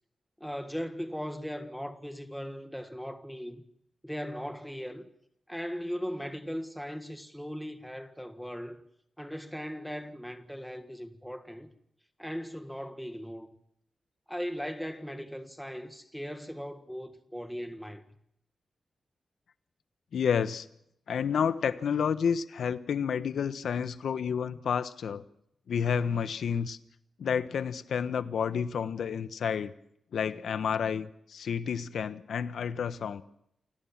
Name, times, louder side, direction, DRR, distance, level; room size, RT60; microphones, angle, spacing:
voice 1, 0.4-3.6 4.0-5.1 5.5-8.8 9.2-11.7 12.2-13.6 14.3-18.2, equal, ahead, 1.7 m, -38 dB
voice 2, 20.1-20.7 21.1-25.2 25.7-26.8 27.2-29.7 30.1-33.2, left 7 dB, 85° left, 1.1 m, -30 dB
29.0 x 18.0 x 7.3 m
wide cardioid pair, 160°, 0 cm